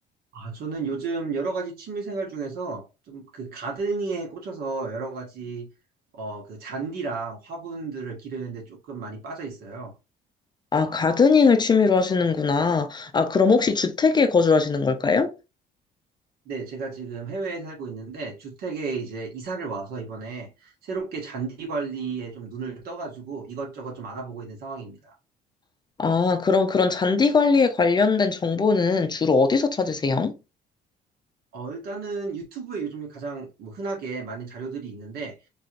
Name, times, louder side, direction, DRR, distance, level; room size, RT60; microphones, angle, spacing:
voice 1, 0.3-5.7 6.1-9.9 16.4-25.1 31.5-35.3, right 4 dB, 65° right, 1.6 m, -33 dB
voice 2, 10.7-15.3 26.0-30.3, left 4 dB, 25° left, 0.5 m, -20 dB
3.8 x 3.0 x 2.5 m
cardioid pair, 110°, 17 cm